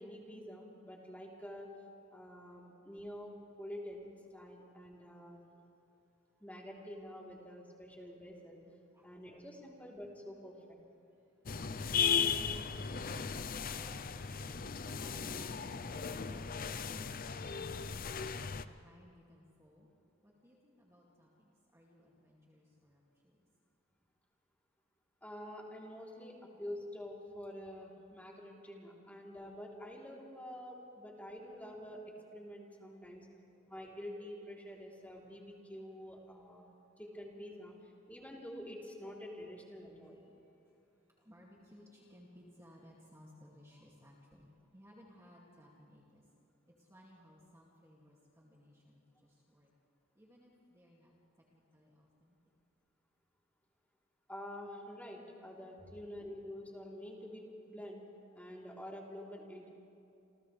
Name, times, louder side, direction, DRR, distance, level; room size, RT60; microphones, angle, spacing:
voice 1, 0.0-1.7 2.1-5.4 6.4-8.6 9.0-10.8 25.2-33.3 33.7-36.6 37.0-40.2 54.3-58.0 58.3-59.7, equal, 10° left, -3 dB, 3.6 m, -48 dB
voice 2, 8.9-9.3 9.6-9.7 11.1-18.0 18.3-19.9 20.2-23.4 33.3-33.9 40.0-40.8 41.1-46.3 46.7-49.7 50.1-51.1 51.5-52.4, equal, 15° right, -4 dB, 2.4 m, -60 dB
sound 1, 11.5-18.7, left 6 dB, 45° left, 0.6 m, -36 dB
28.5 x 28.0 x 3.4 m, 2.8 s
head